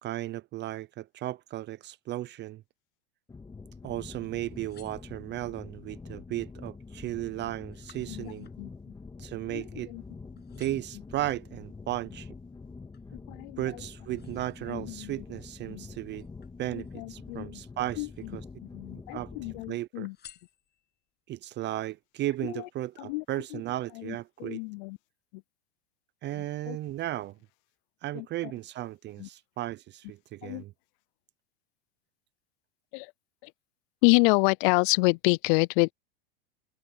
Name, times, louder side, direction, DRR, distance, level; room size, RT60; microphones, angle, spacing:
voice 1, 0.0-2.6 3.8-8.5 9.2-9.9 10.6-12.3 13.6-16.3 16.6-18.4 19.1-20.1 21.3-24.6 26.2-27.4 28.0-30.7, right 15 dB, 35° right, 0.7 m, -35 dB
sound 1, 3.3-19.7, left 4 dB, 10° left, 1.9 m, -46 dB
sound 2, 4.5-5.6 6.2-6.6 6.9-10.1 10.3-11.1 11.7-13.2 13.6-15.1 16.0-17.1 17.7-18.5 18.8-19.5 20.0-21.1 21.6-21.7, left 10 dB, 30° left, 7.7 m, -59 dB
voice 2, 8.1-8.7 9.5-10.0 10.5-10.6 13.3-13.7 14.7-15.2 15.7-15.8 16.7-17.6 18.0-18.3 18.7-20.2 22.4-22.6 23.0-23.2 23.5-23.6 24.0-25.0 26.7-26.8 28.1-28.3 29.2-29.3 30.4-30.6 32.9-33.1 33.4-33.5 34.0-35.9, left 31 dB, 55° left, 0.5 m, -28 dB
hypercardioid pair, 110°, 33 cm